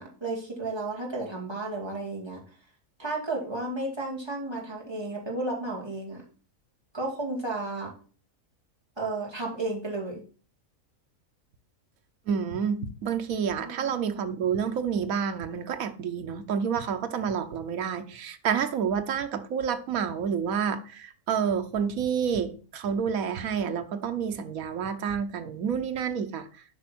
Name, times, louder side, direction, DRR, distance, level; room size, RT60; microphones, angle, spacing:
voice 1, 0.0-2.4 3.0-6.2 6.9-7.9 9.0-10.2 13.6-13.9, right 2 dB, 20° right, 2.4 m, -33 dB
voice 2, 12.3-26.4, right 7 dB, 85° right, 1.3 m, -29 dB
8.0 x 5.3 x 5.9 m
omnidirectional pair, 1.4 m